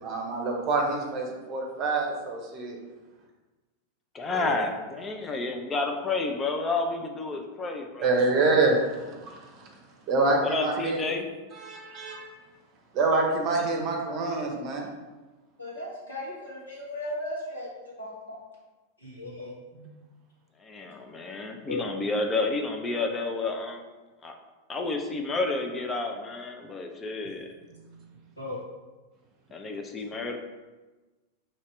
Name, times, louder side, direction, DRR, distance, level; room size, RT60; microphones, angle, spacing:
voice 1, 0.0-2.8 4.3-4.6 8.0-9.7 10.1-11.1 11.5-12.3 12.9-14.9 19.7-19.9 27.7-27.8, right 3 dB, 35° right, 1 dB, 0.8 m, -26 dB
voice 2, 4.1-8.1 10.4-11.3 20.7-23.8 24.2-24.3 24.7-27.4 29.5-30.4, left 3 dB, 20° left, 3 dB, 0.5 m, -30 dB
voice 3, 15.6-18.4 19.0-19.5 21.7-21.9 28.4-28.6, left 1 dB, 75° left, -6 dB, 1.4 m, -36 dB
2.9 x 2.8 x 4.5 m, 1.2 s
figure-of-eight pair, 90°, 0 cm